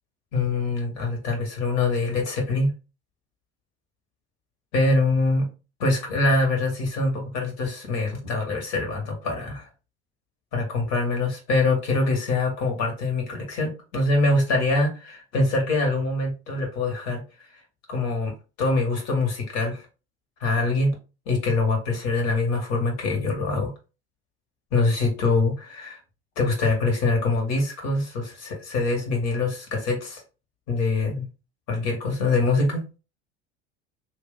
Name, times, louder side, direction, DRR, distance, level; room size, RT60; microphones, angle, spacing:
voice 1, 0.3-2.7 4.7-5.5 5.8-9.7 10.5-17.2 17.9-18.3 18.6-19.8 20.4-20.9 21.3-23.7 24.7-26.0 26.4-30.2 30.7-31.3 31.7-32.8, left 3 dB, 60° left, 1 dB, 1.8 m, -24 dB
2.9 x 2.9 x 3.7 m, 0.31 s
hypercardioid pair, 75°, 32 cm